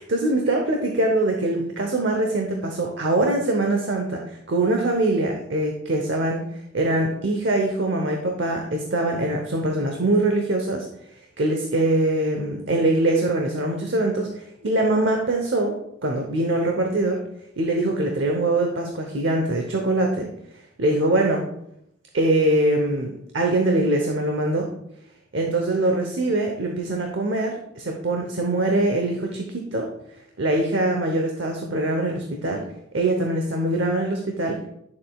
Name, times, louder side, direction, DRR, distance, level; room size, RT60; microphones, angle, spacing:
voice 1, 0.0-10.9 11.4-15.7 16.0-17.2 17.6-20.3 20.8-21.4 22.1-24.7 25.3-29.9 30.4-32.6 32.9-34.6, right 2 dB, 70° right, 2 dB, 0.9 m, -23 dB
10.0 x 7.3 x 2.3 m, 0.78 s
head